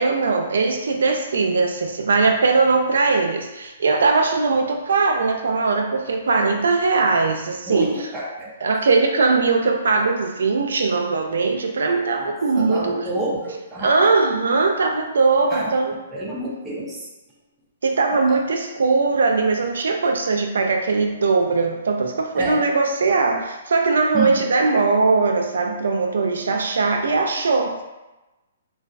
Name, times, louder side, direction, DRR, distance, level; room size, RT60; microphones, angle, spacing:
voice 1, 0.0-8.1 8.6-13.0 13.8-16.0 17.8-27.8, right 4 dB, 85° right, 3 dB, 0.4 m, -20 dB
voice 2, 7.7-8.5 12.2-12.3 12.6-14.1 15.5-15.7 16.1-17.0 18.3-18.4 22.4-22.6 24.1-24.4, right 2 dB, 10° right, -5 dB, 0.4 m, -28 dB
2.2 x 2.2 x 2.5 m, 1.1 s
hypercardioid pair, 170°, 0 cm